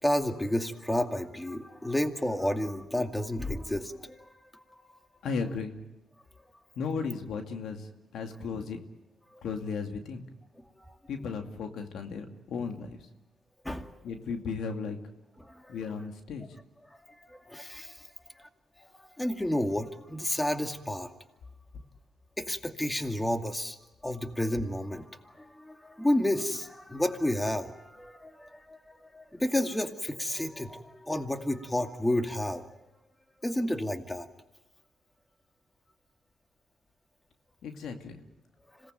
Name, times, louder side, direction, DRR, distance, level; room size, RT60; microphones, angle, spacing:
voice 1, 0.0-4.6 4.9-5.0 10.9-11.0 13.6-13.9 15.4-15.8 17.3-17.9 19.2-21.1 22.4-23.8 24.0-25.1 25.4-28.8 29.1-32.7 33.4-34.3, left 1 dB, 10° left, 5 dB, 2.4 m, -31 dB
voice 2, 5.2-5.8 6.8-7.8 8.1-8.8 9.4-10.2 11.1-13.0 14.0-15.0 15.7-16.5 37.6-38.2, left 5 dB, 75° left, 5 dB, 2.4 m, -35 dB
26.5 x 18.5 x 9.2 m, 1.0 s
supercardioid pair, 65°, 0 cm